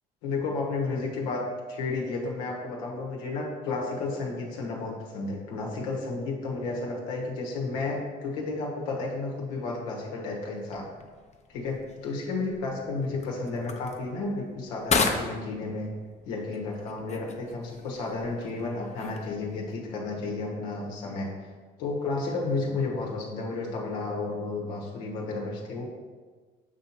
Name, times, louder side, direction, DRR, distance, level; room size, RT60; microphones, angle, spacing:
voice 1, 0.2-10.9 11.5-15.9 16.2-21.3 21.8-25.9, left 3 dB, 85° left, -1 dB, 1.1 m, -32 dB
sound 1, 10.6-19.8, left 4 dB, 35° left, 0.8 m, -35 dB
6.9 x 2.9 x 5.7 m, 1.4 s
supercardioid pair, 70°, 21 cm